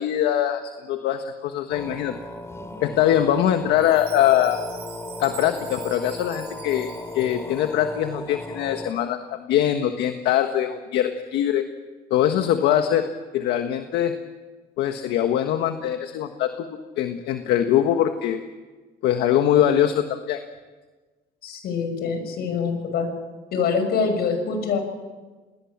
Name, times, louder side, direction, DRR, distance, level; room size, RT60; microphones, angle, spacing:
voice 1, 0.0-2.2 2.8-4.6 5.2-11.6 12.1-14.1 14.8-18.4 19.0-20.4, left 11 dB, 85° left, 7 dB, 1.6 m, -22 dB
throat sing, 1.7-8.9, left 2 dB, 15° left, 3.1 m, -37 dB
Chime, 3.7-8.0, right 10 dB, 80° right, 5.8 m, -44 dB
voice 2, 21.4-23.1 23.5-24.8, left 5 dB, 70° left, 6 dB, 6.4 m, -25 dB
29.0 x 20.0 x 7.4 m, 1.3 s
cardioid pair, 110°, 17 cm